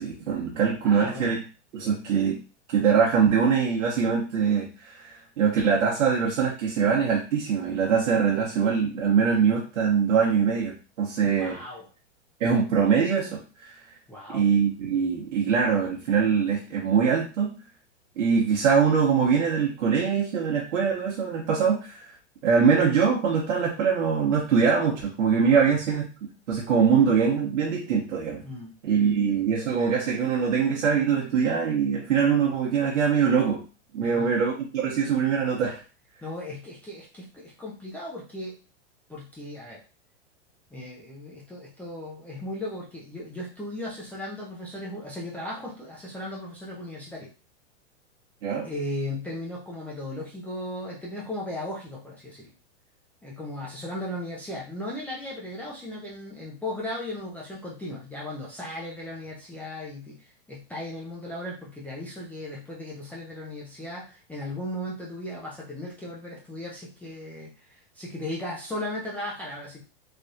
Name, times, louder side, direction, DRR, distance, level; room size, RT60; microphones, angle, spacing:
voice 1, 0.0-1.4 1.7-2.4 2.7-11.6 12.4-13.8 14.3-17.5 18.2-22.1 22.4-26.0 26.5-28.4 28.8-33.6 33.9-35.8 48.4-48.7, right 6 dB, 80° right, -4 dB, 0.9 m, -23 dB
voice 2, 0.8-1.4 11.2-11.8 14.1-14.5 25.5-25.7 28.4-28.7 34.0-34.3 36.2-38.6 39.1-39.8 40.7-47.3 48.6-52.5 53.2-60.2 60.5-69.8, left 1 dB, 5° left, -6 dB, 0.4 m, -36 dB
3.3 x 2.3 x 2.6 m, 0.34 s
hypercardioid pair, 130°, 36 cm